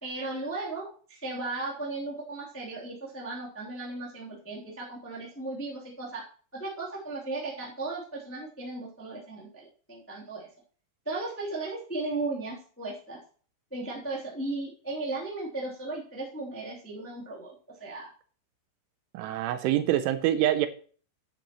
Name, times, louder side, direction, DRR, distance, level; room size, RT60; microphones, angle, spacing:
voice 1, 0.0-6.2 6.5-10.5 11.0-13.2 13.7-17.5 17.8-18.1, right 2 dB, 5° left, 1.2 m, -36 dB
voice 2, 19.1-20.7, right 12 dB, 80° right, 3.0 m, -25 dB
11.0 x 9.9 x 3.0 m
omnidirectional pair, 5.8 m